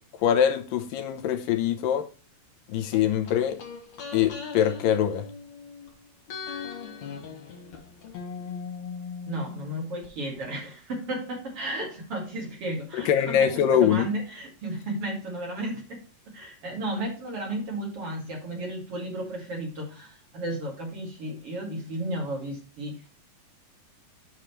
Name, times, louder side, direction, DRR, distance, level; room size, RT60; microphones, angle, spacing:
voice 1, 0.2-2.1 2.7-3.6 4.1-5.3 12.9-14.1, left 9 dB, 80° left, 2.5 m, -23 dB
sound 1, 2.9-5.9 6.3-10.1 10.4-10.5, left 6 dB, 60° left, 2.5 m, -39 dB
voice 2, 9.3-23.1, right 1 dB, 45° right, 2.8 m, -34 dB
8.9 x 5.8 x 3.1 m
omnidirectional pair, 4.0 m